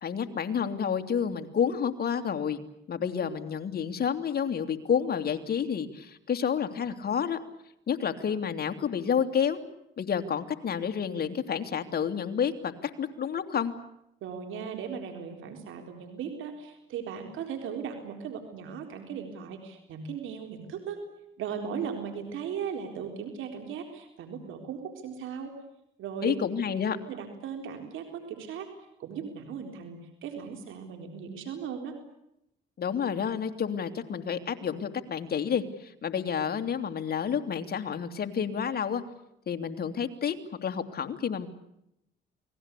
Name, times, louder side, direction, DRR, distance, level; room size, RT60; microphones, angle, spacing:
voice 1, 0.0-2.6 2.9-7.4 7.9-9.6 10.0-12.7 13.0-13.7 26.2-27.0 32.8-39.0 39.5-40.3 40.6-41.5, left 7 dB, 50° left, 7 dB, 2.8 m, -29 dB
voice 2, 14.2-21.0 21.4-25.6 26.0-26.3 27.0-28.7 29.0-32.0, right 7 dB, 85° right, 5 dB, 4.1 m, -37 dB
29.5 x 20.5 x 8.4 m, 0.81 s
cardioid pair, 90°, 20 cm